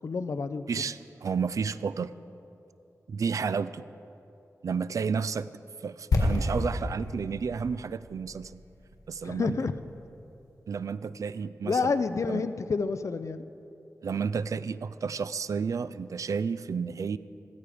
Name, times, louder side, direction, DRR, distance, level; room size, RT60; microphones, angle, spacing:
voice 1, 0.0-0.6 9.2-9.7 11.6-13.4, left 4 dB, 60° left, 12 dB, 0.6 m, -29 dB
voice 2, 0.7-2.1 3.1-3.9 4.6-5.5 5.8-8.6 9.1-9.5 10.7-11.9 12.3-12.4 14.0-17.2, right 5 dB, 70° right, 16 dB, 0.4 m, -31 dB
sound 1, 6.1-10.0 10.3-10.4, left 2 dB, 85° left, 1.9 m, -31 dB
15.0 x 14.0 x 5.0 m, 2.8 s
wide cardioid pair, 80°, 6 cm